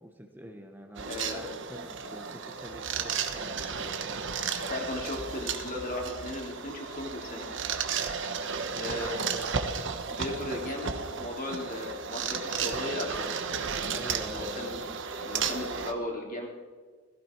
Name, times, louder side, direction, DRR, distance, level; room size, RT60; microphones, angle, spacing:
voice 1, 0.0-4.2 8.7-9.5 13.9-15.0, right 1 dB, 10° right, 3 dB, 1.0 m, -46 dB
sound 1, 1.0-15.9, right 6 dB, 60° right, 1.2 m, -34 dB
voice 2, 1.1-1.5 4.7-7.6 8.7-9.2 10.1-13.4 14.3-14.8 15.2-16.5, left 2 dB, 40° left, 0 dB, 3.2 m, -36 dB
17.0 x 15.5 x 4.6 m, 1.5 s
head